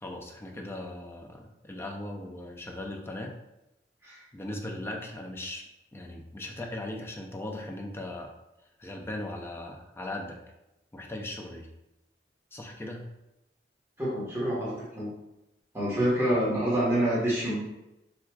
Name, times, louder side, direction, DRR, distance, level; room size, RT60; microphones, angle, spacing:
voice 1, 0.0-3.3 4.3-5.6 5.9-8.3 8.8-10.4 10.9-11.7 12.5-13.1, left 1 dB, 15° left, 1 dB, 0.4 m, -38 dB
voice 2, 14.0-15.1 15.7-17.6, right 1 dB, 15° right, -8 dB, 1.1 m, -27 dB
4.5 x 2.3 x 2.2 m, 0.93 s
head